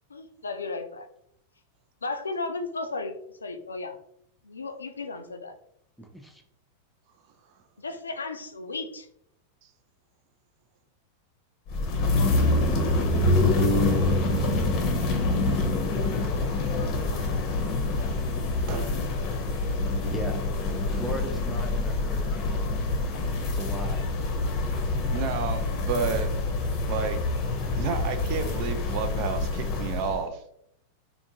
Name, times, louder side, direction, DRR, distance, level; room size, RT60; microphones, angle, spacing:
voice 1, 0.1-1.1 2.0-3.2 3.4-4.0 4.4-5.6 7.8-9.1, left 3 dB, 75° left, 7 dB, 0.4 m, -34 dB
voice 2, 6.0-6.4 20.1-20.4 20.9-22.8 23.5-24.1, equal, ahead, 2 dB, 0.5 m, -37 dB
sound 1, 11.7-30.2, left 2 dB, 40° left, 0.7 m, -26 dB
voice 3, 25.1-26.3 26.9-27.2 27.8-30.4, right 6 dB, 45° right, 8 dB, 0.4 m, -31 dB
3.4 x 2.6 x 2.8 m, 0.74 s
figure-of-eight pair, 90°, 0 cm